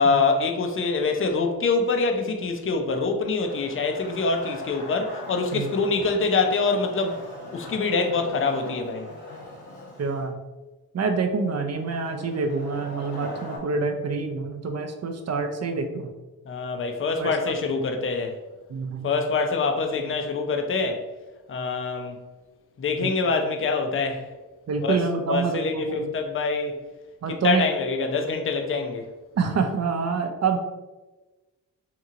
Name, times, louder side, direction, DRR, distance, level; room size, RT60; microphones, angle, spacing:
voice 1, 0.0-7.2 7.5-9.1 16.5-18.4 19.0-21.0 21.5-22.2 22.8-24.2 24.8-25.0 25.3-26.8 27.4-29.1, left 4 dB, 30° left, 0.5 m, -25 dB
Wood, 3.4-10.2 11.8-13.6, left 1 dB, 80° left, 1.1 m, -41 dB
voice 2, 10.0-10.4 10.9-16.1 17.2-17.6 18.7-19.1 23.0-23.1 24.7-26.1 27.2-27.7 29.4-30.6, right 4 dB, 40° right, 0.5 m, -26 dB
2.9 x 2.7 x 2.4 m
supercardioid pair, 40°, 42 cm